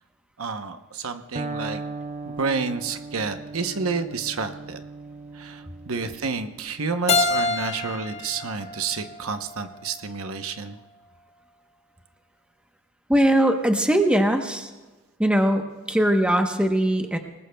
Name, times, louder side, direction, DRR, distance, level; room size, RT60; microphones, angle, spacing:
voice 1, 0.4-1.8 2.3-4.8 5.3-10.8, right 4 dB, 75° right, 8 dB, 0.9 m, -30 dB
Electric guitar, 1.4-9.2, right 3 dB, 30° right, 0.8 m, -39 dB
Keyboard (musical), 7.1-9.9, left 3 dB, 30° left, 0.9 m, -27 dB
voice 2, 13.1-14.7 15.2-17.2, right 1 dB, 5° right, 4 dB, 0.9 m, -21 dB
26.5 x 19.5 x 2.3 m, 1.2 s
head